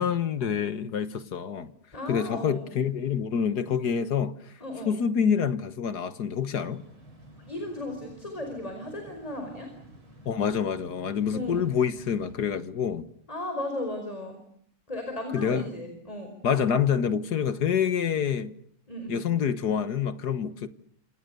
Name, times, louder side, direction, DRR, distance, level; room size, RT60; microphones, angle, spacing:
voice 1, 0.0-1.7 2.1-4.5 4.8-6.8 10.2-13.0 15.3-15.6 16.4-18.5 19.1-20.7, left 7 dB, 50° left, 1.7 m, -27 dB
voice 2, 1.9-2.7 4.6-5.0 7.4-9.7 11.3-11.6 13.3-14.4 14.9-16.3 18.9-19.1, left 1 dB, 15° left, 5.1 m, -35 dB
sound 1, 6.6-12.3, right 1 dB, 65° right, 8.4 m, -51 dB
28.0 x 27.5 x 6.8 m
omnidirectional pair, 2.4 m